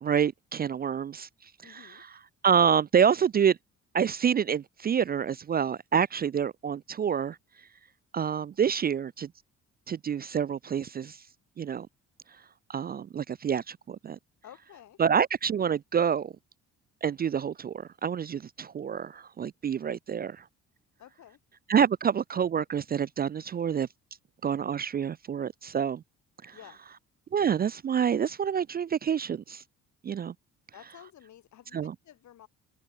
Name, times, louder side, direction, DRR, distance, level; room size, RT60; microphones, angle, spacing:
voice 1, 0.0-1.3 1.7-1.8 2.4-3.6 3.9-7.4 8.1-9.3 9.9-11.2 11.6-11.9 12.7-14.2 15.0-16.3 17.0-20.4 21.7-23.9 24.4-26.0 26.4-26.5 27.3-29.6 30.0-30.3 31.7-31.9, right 7 dB, 30° right, 0.4 m, -27 dB
voice 2, 1.6-2.0 14.4-15.0 21.0-21.4 26.5-26.8 30.7-32.5, left 11 dB, 70° left, 2.9 m, -52 dB
cardioid pair, 90°, 30 cm